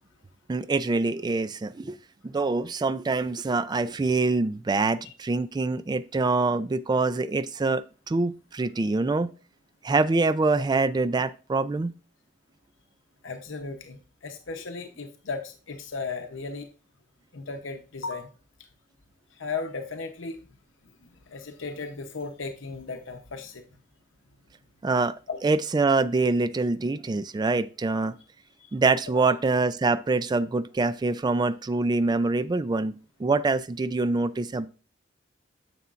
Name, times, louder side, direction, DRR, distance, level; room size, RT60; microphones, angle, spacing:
voice 1, 0.5-2.0 2.2-9.3 9.8-11.9 24.8-28.2 28.7-34.7, right 3 dB, 20° right, 14 dB, 0.3 m, -25 dB
voice 2, 13.2-16.7 17.3-18.3 19.3-20.4 21.0-23.6 25.3-25.5 28.6-28.7 29.1-29.3, left 4 dB, 85° left, 5 dB, 0.8 m, -36 dB
9.4 x 6.9 x 2.5 m, 0.35 s
head